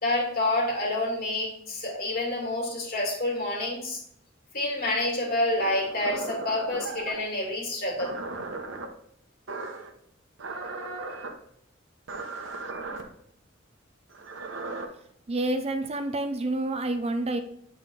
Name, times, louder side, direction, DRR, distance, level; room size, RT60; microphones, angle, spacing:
voice 1, 0.0-4.0 4.5-8.2, left 1 dB, 50° left, -1 dB, 2.4 m, -28 dB
sound 1, 5.6-7.3 8.0-8.9 9.5-9.9 10.4-11.3 12.1-13.0 14.1-14.9, right 3 dB, 80° right, 1.0 m, -36 dB
voice 2, 15.3-17.4, right 2 dB, 30° right, 7 dB, 0.5 m, -28 dB
8.4 x 4.1 x 3.9 m, 0.70 s
head